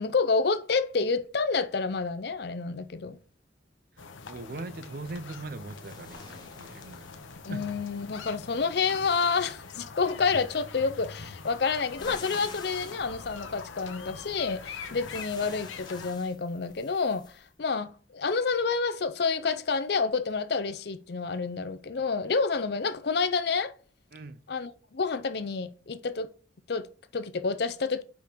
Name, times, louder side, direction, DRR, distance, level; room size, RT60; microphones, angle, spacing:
voice 1, 0.0-3.2 7.5-23.7 24.5-26.3 26.7-28.0, left 4 dB, 55° left, 0.5 m, -29 dB
sound 1, 4.0-16.1, left 5 dB, 80° left, 0.8 m, -44 dB
voice 2, 4.3-7.1 7.5-7.6 24.1-24.4, right 2 dB, 50° right, 0.5 m, -40 dB
sound 2, 4.9-17.5, left 4 dB, 20° left, 0.8 m, -50 dB
5.2 x 5.1 x 4.5 m
head